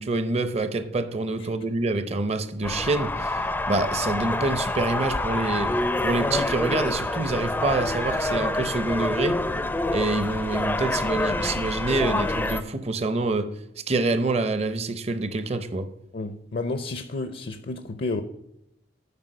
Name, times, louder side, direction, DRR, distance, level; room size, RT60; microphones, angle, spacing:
voice 1, 0.0-5.7 6.0-9.4 9.9-13.5 13.9-15.9, right 3 dB, 35° right, 10 dB, 0.6 m, -26 dB
sound 1, 2.6-12.6, left 2 dB, 10° left, 0.4 m, -27 dB
voice 2, 16.1-18.2, left 3 dB, 55° left, 9 dB, 0.6 m, -31 dB
9.6 x 4.7 x 6.4 m, 0.83 s
head